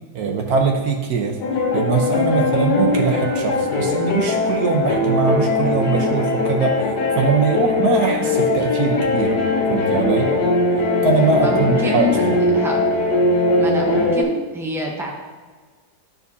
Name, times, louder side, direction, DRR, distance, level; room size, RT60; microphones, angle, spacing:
voice 1, 0.1-1.4 1.7-6.8 7.2-9.3 9.7-10.3 11.0-12.4, right 4 dB, 60° right, 2 dB, 1.2 m, -21 dB
sound 1, 1.4-14.2, left 2 dB, 65° left, 1.3 m, -20 dB
voice 2, 11.4-12.2 12.5-12.8 13.6-15.1, left 2 dB, 5° right, -1 dB, 0.3 m, -26 dB
12.5 x 4.8 x 2.7 m, 1.4 s
omnidirectional pair, 2.0 m